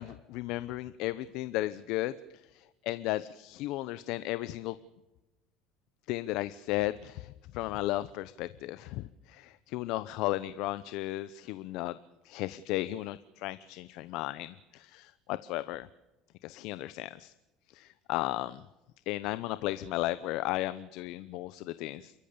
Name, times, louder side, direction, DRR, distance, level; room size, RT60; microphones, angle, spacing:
voice 1, 0.0-2.1 2.5-4.8 6.1-12.0 12.2-15.9 16.4-17.3 17.7-18.6 19.1-22.1, left 16 dB, 65° left, 14 dB, 0.8 m, -35 dB
29.0 x 14.5 x 6.9 m, 1.0 s
supercardioid pair, 125°, 0 cm